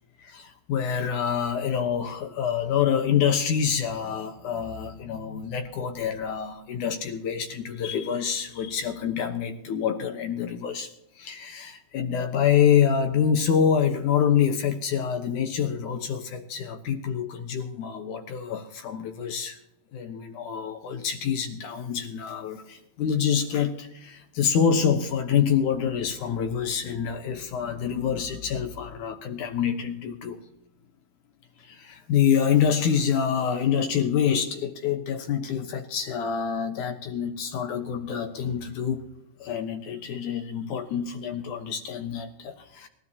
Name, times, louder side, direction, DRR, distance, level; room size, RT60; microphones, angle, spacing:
voice 1, 0.2-19.6 19.9-30.4 31.7-39.0 39.4-42.9, left 8 dB, 65° left, 6 dB, 2.2 m, -26 dB
25.5 x 12.5 x 2.8 m, 0.81 s
omnidirectional pair, 4.5 m